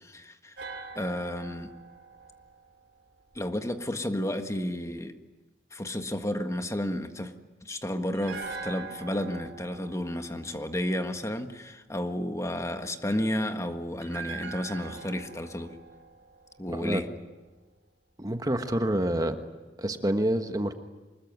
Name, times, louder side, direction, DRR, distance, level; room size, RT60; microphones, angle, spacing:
voice 1, 0.1-0.6 0.9-1.7 3.3-5.1 5.7-7.3 7.6-15.8 16.6-17.1, left 1 dB, 15° left, 7 dB, 1.5 m, -32 dB
sound 1, 0.6-3.7 8.1-11.4 14.0-17.2 17.5-17.6, right 4 dB, 90° right, 3.0 m, -43 dB
voice 2, 18.2-19.4 19.8-20.7, right 1 dB, 20° right, 7 dB, 1.4 m, -27 dB
25.0 x 21.0 x 9.5 m, 1.2 s
head